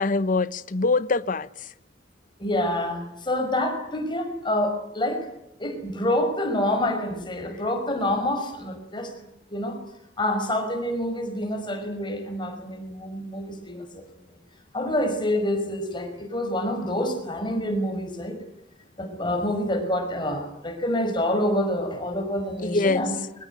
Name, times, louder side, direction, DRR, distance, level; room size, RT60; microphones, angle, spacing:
voice 1, 0.0-1.7 22.6-23.0, left 3 dB, 50° left, 0.9 m, -24 dB
voice 2, 2.4-5.3 5.6-9.1 9.5-9.8 10.2-14.0 14.7-18.4 19.0-23.1, left 1 dB, 25° left, 5.4 m, -27 dB
23.5 x 21.0 x 9.5 m
head